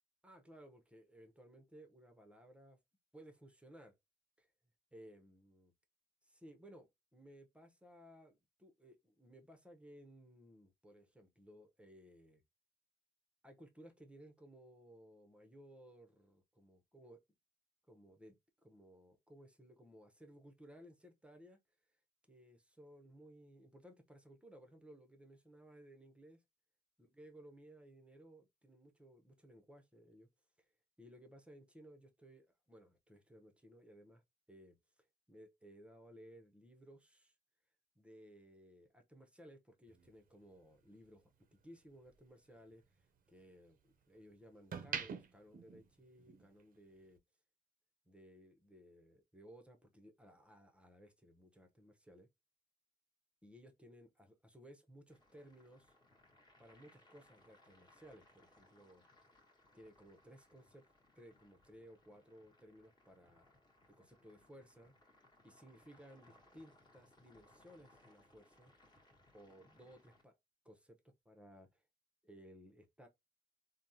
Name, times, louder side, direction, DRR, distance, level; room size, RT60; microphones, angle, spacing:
voice 1, 0.2-2.8 3.1-3.9 4.4-4.5 4.9-5.7 6.2-12.4 13.4-17.2 17.9-21.6 22.3-26.4 27.0-30.3 30.6-30.7 31.0-34.2 34.5-34.8 35.3-37.3 38.0-41.2 41.5-47.2 48.1-52.3 53.4-55.9 56.6-59.0 59.7-63.6 63.9-64.9 65.4-68.7 69.3-70.4 70.6-71.8 72.2-73.1, equal, 5° right, 0.7 m, -59 dB
sound 1, 39.9-42.2 42.6-44.0 44.5-46.6 46.9-47.2, right 6 dB, 45° right, 0.6 m, -47 dB
sound 2, 55.1-70.2, left 1 dB, 20° left, 1.2 m, -68 dB
3.4 x 2.1 x 2.6 m
cardioid pair, 90°, 20 cm